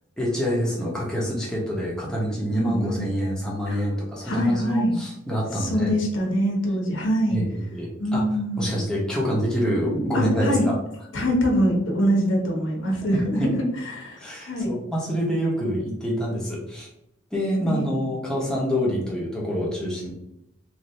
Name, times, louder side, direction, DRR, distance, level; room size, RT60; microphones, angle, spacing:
voice 1, 0.2-5.9 7.3-8.2 8.6-10.7 13.1-13.5 14.2-16.9 17.3-20.1, equal, 5° left, -4 dB, 0.8 m, -26 dB
voice 2, 2.5-3.0 3.7-3.8 4.2-4.9 5.5-7.4 8.0-8.8 10.1-10.7 11.1-14.7 17.6-17.9, equal, 75° left, 0 dB, 0.9 m, -24 dB
3.1 x 2.5 x 2.6 m, 0.83 s
head